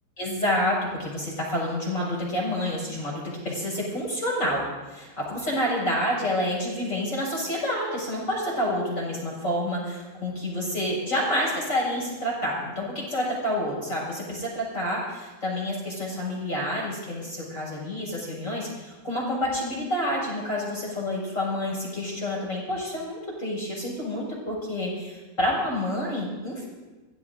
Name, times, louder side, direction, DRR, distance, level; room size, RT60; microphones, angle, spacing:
voice 1, 0.2-4.6 4.9-26.6, left 1 dB, 15° left, -5 dB, 6.1 m, -28 dB
25.0 x 17.5 x 2.7 m, 1.2 s
omnidirectional pair, 5.6 m